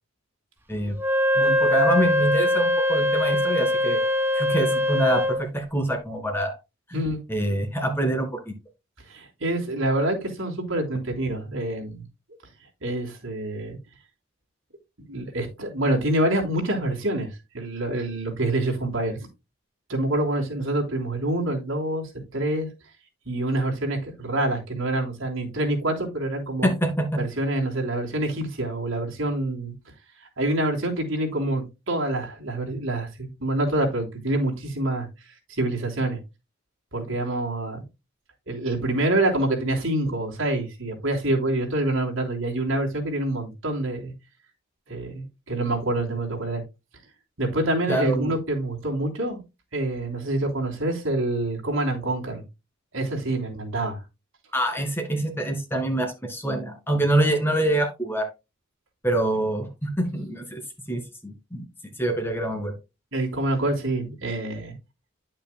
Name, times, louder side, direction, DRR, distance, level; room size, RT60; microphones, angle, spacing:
Wind instrument woodwind instrument, 1.0-5.4, left 1 dB, 10° right, 1.0 m, -22 dB
voice 1, 1.4-4.0 4.3-6.6 6.9-7.0 7.3-8.5 26.6-27.2 47.9-48.3 54.5-58.3 59.0-60.6 60.9-61.6 62.0-62.8, right 1 dB, 10° left, 1.9 m, -25 dB
voice 2, 9.1-12.0 12.8-13.8 15.0-19.2 19.9-22.7 23.3-26.7 27.2-29.7 30.4-36.2 36.9-37.8 38.5-44.1 44.9-46.6 47.4-49.4 49.7-52.4 52.9-54.0 63.1-64.7, right 1 dB, 75° right, 3.3 m, -26 dB
9.9 x 8.8 x 2.2 m
head